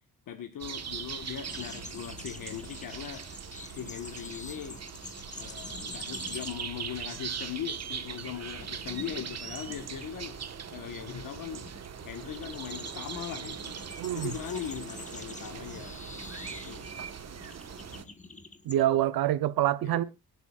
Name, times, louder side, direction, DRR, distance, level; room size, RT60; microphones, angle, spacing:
voice 1, 0.3-3.2 3.6-4.8 5.4-10.4 10.7-11.7 12.0-13.8 14.1-16.0 16.7-16.8 19.8-20.0, left 9 dB, 60° left, 1.7 m, -39 dB
sound 1, 0.6-18.0, right 7 dB, 45° right, 1.6 m, -41 dB
sound 2, 1.4-6.8 7.1-7.4 7.8-18.8, left 3 dB, 20° left, 1.7 m, -47 dB
voice 2, 14.0-14.3 18.6-20.0, right 13 dB, 75° right, 0.9 m, -26 dB
24.0 x 8.2 x 2.5 m
cardioid pair, 90°, 36 cm